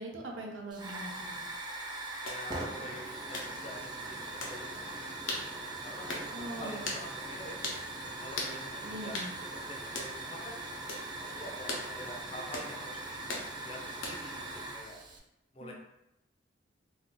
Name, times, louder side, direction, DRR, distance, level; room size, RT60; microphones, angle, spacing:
voice 1, 0.0-1.4 6.3-6.9 8.8-9.3 15.6-15.7, right 1 dB, 80° right, 0 dB, 0.6 m, -42 dB
Hiss / Fire, 0.7-15.2, right 2 dB, 20° right, 0.3 m, -41 dB
sound 1, 2.2-2.4 3.3-3.5 4.4-4.6 5.3-5.5 6.1-6.3 6.8-7.0 7.6-7.8 8.4-8.6 9.1-9.3 9.9-10.1 10.9-11.1 11.7-11.9 12.5-12.7 13.3-13.5 14.0-14.3, left 2 dB, 85° left, 0.7 m, -37 dB
voice 2, 2.2-4.9 5.8-7.6 8.2-9.2 9.5-10.6 11.2-13.3 13.6-14.4 14.7-15.0 15.5-15.7, equal, 30° left, -1 dB, 0.5 m, -46 dB
2.6 x 2.3 x 3.7 m, 0.88 s
head